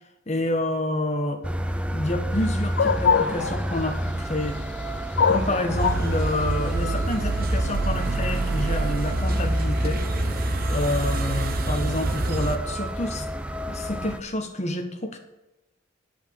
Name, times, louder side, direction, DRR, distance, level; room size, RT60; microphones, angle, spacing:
voice 1, 0.3-1.4 1.9-4.6 5.3-10.0 10.7-13.3 13.7-15.2, left 1 dB, 35° left, 5 dB, 1.3 m, -28 dB
sound 1, 1.4-14.2, equal, 5° right, 0.5 m, -31 dB
sound 2, 2.4-7.5, left 6 dB, 55° left, 0.4 m, -25 dB
sound 3, 5.8-12.6, right 2 dB, 45° right, 0.8 m, -26 dB
9.4 x 5.4 x 7.9 m, 0.98 s
head